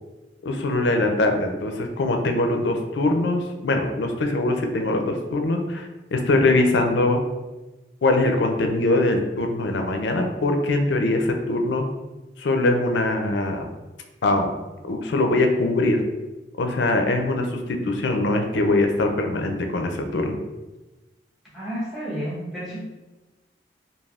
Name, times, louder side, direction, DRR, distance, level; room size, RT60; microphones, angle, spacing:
voice 1, 0.4-7.2 8.0-11.8 12.4-13.7 14.2-14.5 14.9-16.0 16.6-20.4, left 2 dB, 75° left, 4 dB, 0.4 m, -22 dB
voice 2, 21.5-22.8, equal, ahead, -9 dB, 0.9 m, -31 dB
3.3 x 2.3 x 2.3 m, 1.1 s
head